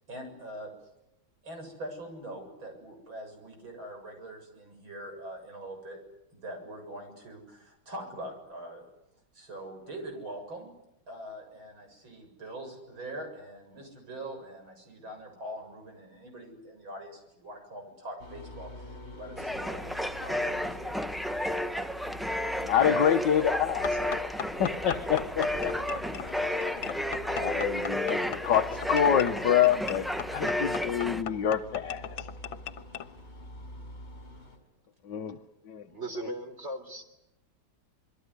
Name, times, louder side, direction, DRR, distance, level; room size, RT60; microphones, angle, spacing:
voice 1, 0.1-0.7 1.4-6.0 6.3-8.8 9.3-10.7 11.1-21.0, right 1 dB, 80° right, 4 dB, 8.1 m, -43 dB
sound 1, 18.2-34.6, left 1 dB, 30° left, 5.8 m, -46 dB
sound 2, 19.4-31.2, left 1 dB, ahead, 0.7 m, -32 dB
voice 2, 22.6-24.0 24.6-25.7 27.2-28.6 28.9-32.2 35.1-35.4 35.7-35.9, left 9 dB, 65° left, 6 dB, 1.8 m, -27 dB
sound 3, 23.8-33.1, left 8 dB, 85° left, 2.0 m, -39 dB
voice 3, 35.9-37.0, right 1 dB, 35° right, 7 dB, 4.1 m, -37 dB
26.5 x 23.0 x 9.8 m, 0.86 s
omnidirectional pair, 2.1 m